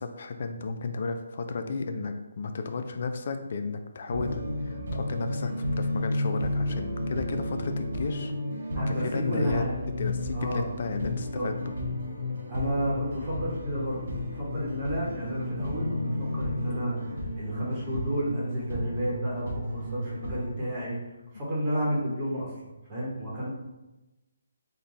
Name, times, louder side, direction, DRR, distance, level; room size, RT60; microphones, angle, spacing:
voice 1, 0.0-8.3 8.9-9.7 10.0-11.7, left 4 dB, 55° left, 7 dB, 0.4 m, -33 dB
sound 1, 4.1-20.5, left 1 dB, 70° right, 1.1 m, -32 dB
voice 2, 8.7-9.9 10.3-10.7 11.3-11.5 12.5-21.0 21.3-23.5, equal, 25° right, -6 dB, 1.0 m, -31 dB
3.8 x 2.2 x 4.0 m, 1.0 s
hypercardioid pair, 155°, 0 cm